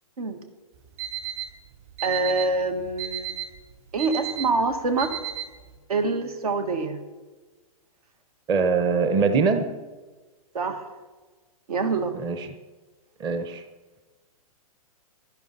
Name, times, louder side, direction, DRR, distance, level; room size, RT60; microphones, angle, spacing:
Alarm, 0.7-5.8, right 11 dB, 45° right, 3.5 m, -35 dB
voice 1, 2.0-3.3 3.9-5.1 5.9-7.0 10.5-10.9 11.7-12.1, right 3 dB, 80° right, 7 dB, 1.7 m, -25 dB
voice 2, 8.5-9.6 12.1-12.5 13.2-13.6, right 5 dB, 25° right, 7 dB, 0.8 m, -22 dB
11.5 x 11.0 x 4.1 m, 1.3 s
hypercardioid pair, 130°, 19 cm